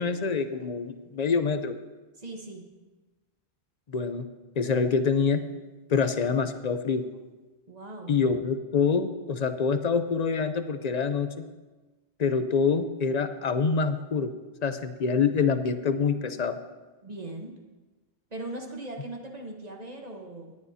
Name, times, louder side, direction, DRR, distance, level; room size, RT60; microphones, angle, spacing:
voice 1, 0.0-1.7 3.9-4.3 4.6-5.4 5.9-7.0 8.1-11.4 12.2-14.3 14.6-16.6, left 5 dB, 45° left, 10 dB, 0.7 m, -26 dB
voice 2, 2.1-2.7 7.7-8.2 17.0-17.6 18.3-20.6, right 2 dB, 40° right, 1 dB, 1.2 m, -39 dB
18.5 x 9.7 x 2.8 m, 1.2 s
omnidirectional pair, 1.1 m